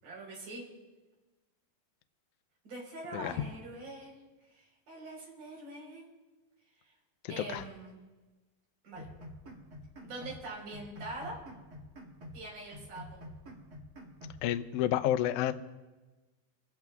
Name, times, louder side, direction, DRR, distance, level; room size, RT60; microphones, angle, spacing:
voice 1, 0.0-0.7 2.6-4.1 4.5-6.1 7.3-8.0 8.8-9.1 10.0-11.4 12.3-13.2, right 2 dB, 60° right, -2 dB, 5.9 m, -43 dB
voice 2, 7.2-7.6 14.4-15.5, left 12 dB, 80° left, 9 dB, 1.7 m, -30 dB
sound 1, 9.0-10.4 10.7-12.4 12.7-14.4, left 1 dB, 35° right, 1.8 m, -48 dB
24.5 x 16.5 x 2.4 m, 1.2 s
omnidirectional pair, 4.2 m